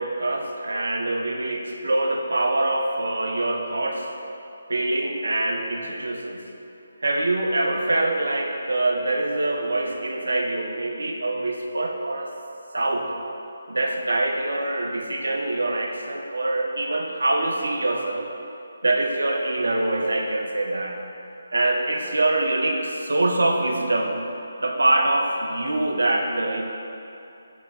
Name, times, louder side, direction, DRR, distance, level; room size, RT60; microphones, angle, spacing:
voice 1, 0.0-4.1 4.7-6.4 7.0-12.3 12.7-13.2 13.7-18.3 18.8-21.0 21.5-24.2 24.6-26.6, right 2 dB, 65° right, 2 dB, 0.5 m, -24 dB
3.9 x 3.0 x 3.9 m, 2.8 s
figure-of-eight pair, 150°, 0 cm